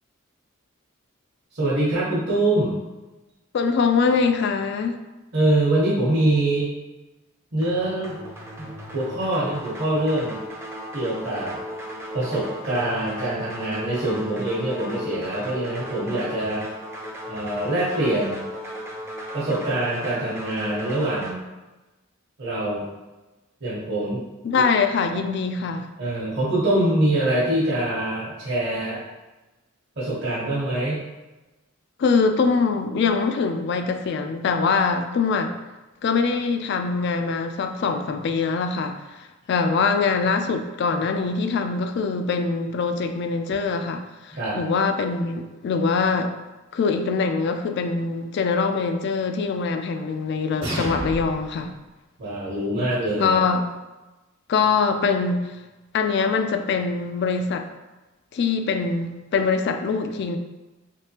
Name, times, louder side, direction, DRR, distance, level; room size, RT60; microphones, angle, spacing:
voice 1, 1.5-2.8 5.3-6.7 7.5-8.2 8.6-10.4 10.9-11.6 12.1-16.7 17.3-18.4 19.3-21.4 22.4-22.9 23.6-24.2 24.5-24.6 26.0-29.0 30.0-31.0 44.3-44.6 52.2-53.4, right 1 dB, 55° right, -8 dB, 1.0 m, -24 dB
voice 2, 3.5-5.0 24.4-25.9 32.0-35.5 36.0-46.3 46.7-51.7 53.2-53.7 54.5-55.5 55.9-57.7 58.3-60.4, left 4 dB, 55° left, 6 dB, 0.3 m, -23 dB
sound 1, 7.6-21.3, equal, 15° right, 0.4 m, -36 dB
sound 2, 50.6-51.6, equal, 80° right, 1.1 m, -30 dB
3.5 x 3.2 x 2.8 m, 1.1 s
head